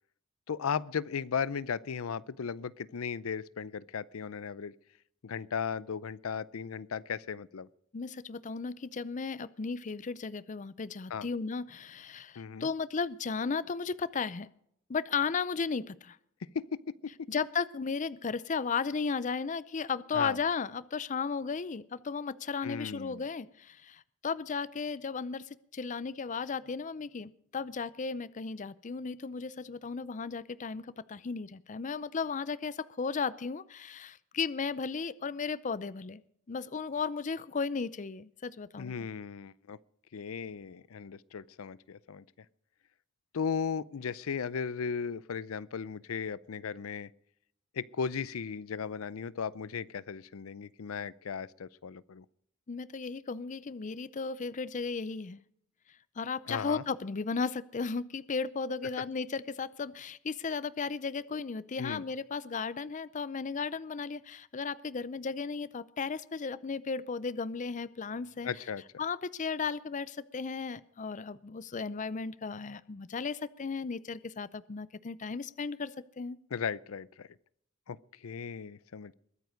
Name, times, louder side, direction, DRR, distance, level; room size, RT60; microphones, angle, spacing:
voice 1, 0.5-4.7 5.2-7.7 11.1-11.3 12.4-12.7 16.5-17.1 20.1-20.4 22.6-23.2 38.8-39.8 40.1-42.2 43.3-47.1 47.7-52.3 56.5-56.8 61.8-62.0 68.4-68.8 76.5-77.3 77.9-79.1, left 6 dB, 90° left, 21 dB, 0.5 m, -36 dB
voice 2, 7.9-14.5 14.9-16.2 17.3-36.2 36.5-38.9 52.7-55.4 56.2-68.5 69.0-76.4, left 5 dB, 35° left, 18 dB, 0.5 m, -35 dB
21.5 x 9.3 x 5.2 m, 0.70 s
head